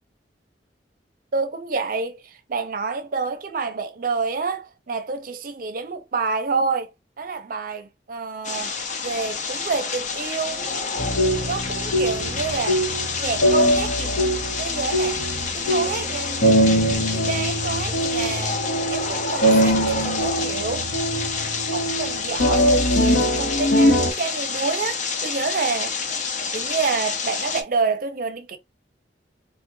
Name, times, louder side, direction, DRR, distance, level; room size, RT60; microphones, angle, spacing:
voice 1, 1.3-6.9 7.2-8.7 9.0-10.7 11.4-12.9 13.2-14.3 14.6-15.2 15.5-16.6 17.1-18.6 18.9-20.9 21.7-26.0 26.5-28.6, right 4 dB, 50° right, 0.5 m, -28 dB
sound 1, 8.4-27.6, left 5 dB, 45° left, 0.6 m, -28 dB
sound 2, 11.0-24.1, equal, 85° left, 0.8 m, -22 dB
3.6 x 2.1 x 2.6 m
head